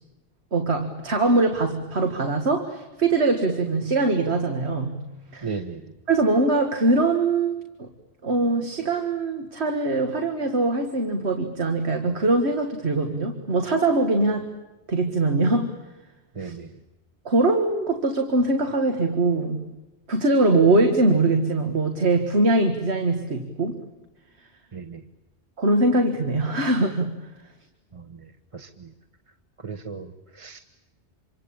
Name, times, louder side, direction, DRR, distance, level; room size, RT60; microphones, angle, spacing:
voice 1, 0.5-5.0 5.3-5.6 6.1-7.9 8.2-14.5 14.9-15.7 16.4-16.5 17.3-19.7 20.1-23.8 25.6-27.2, right 2 dB, 75° right, 5 dB, 2.1 m, -22 dB
voice 2, 5.4-5.9 16.3-16.7 24.7-25.0 27.9-28.2 28.5-28.9 29.6-30.6, right 5 dB, 30° right, 4 dB, 1.2 m, -36 dB
27.0 x 25.0 x 8.8 m, 1.1 s
omnidirectional pair, 1.1 m